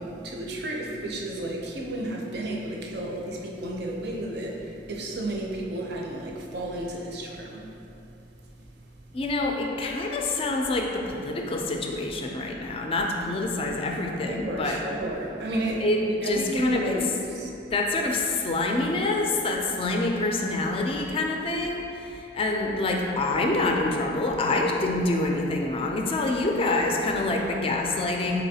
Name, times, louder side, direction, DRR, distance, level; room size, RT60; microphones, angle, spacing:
voice 1, 0.0-4.6 4.9-7.6 14.3-17.1 17.3-17.5, right 1 dB, 65° right, -1 dB, 0.6 m, -32 dB
voice 2, 9.1-14.8 15.8-17.0 17.7-28.4, left 2 dB, 30° left, 1 dB, 0.4 m, -26 dB
4.3 x 3.9 x 2.7 m, 2.8 s
head